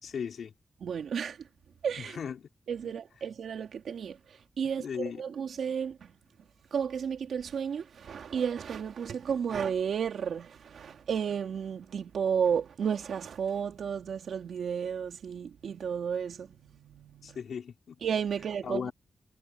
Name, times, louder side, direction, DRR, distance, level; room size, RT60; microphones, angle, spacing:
voice 1, 0.0-0.5 2.0-2.5 4.8-5.2 17.2-18.0 18.6-18.9, left 7 dB, 70° left, 4.4 m, -37 dB
voice 2, 0.8-1.5 1.8-2.2 2.7-6.1 6.7-17.4 18.0-18.9, right 7 dB, 75° right, 3.3 m, -33 dB
wide cardioid pair, 135°, 0 cm